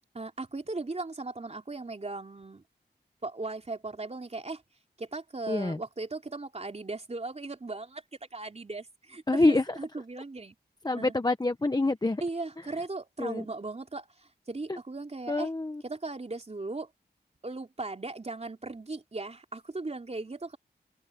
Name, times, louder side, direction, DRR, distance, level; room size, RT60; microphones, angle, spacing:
voice 1, 0.1-2.6 3.2-4.6 5.0-8.0 8.3-10.5 10.9-11.1 12.2-15.5 15.8-16.9 17.4-20.6, right 3 dB, 40° right, 3.4 m, -37 dB
voice 2, 5.5-5.8 9.3-9.6 10.8-12.2 13.2-13.4 14.7-14.8 15.3-15.8, left 2 dB, 25° left, 0.9 m, -26 dB
open air
wide cardioid pair, 80°, 18 cm